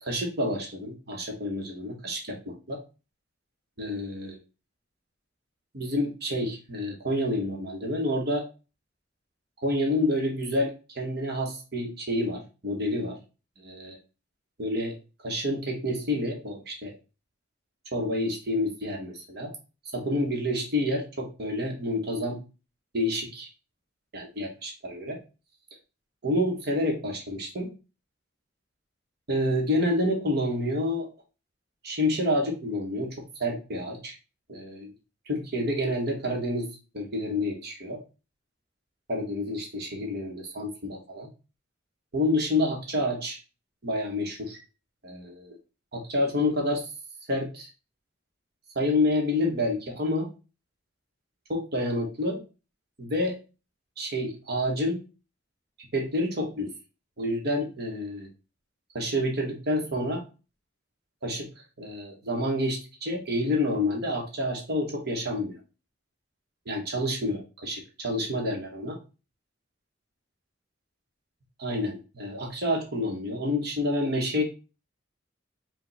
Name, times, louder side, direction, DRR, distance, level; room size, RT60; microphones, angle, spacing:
voice 1, 0.0-2.8 3.8-4.4 5.7-8.4 9.6-13.2 13.6-14.0 14.6-15.0 15.2-17.0 17.9-19.5 19.9-22.4 22.9-23.5 24.1-25.2 26.2-27.7 29.3-31.1 31.8-34.1 34.5-34.9 35.3-36.7 36.9-38.0 39.1-41.3 42.1-43.4 43.8-44.6 45.0-45.6 45.9-46.9 47.3-47.7 48.7-50.3 51.5-52.4 53.0-53.4 54.0-55.0 55.8-56.7 57.2-58.3 58.9-60.2 61.2-61.5 61.8-65.6 66.7-69.0 71.6-74.4, left 1 dB, 60° right, 0 dB, 1.1 m, -28 dB
5.0 x 2.3 x 3.9 m, 0.32 s
head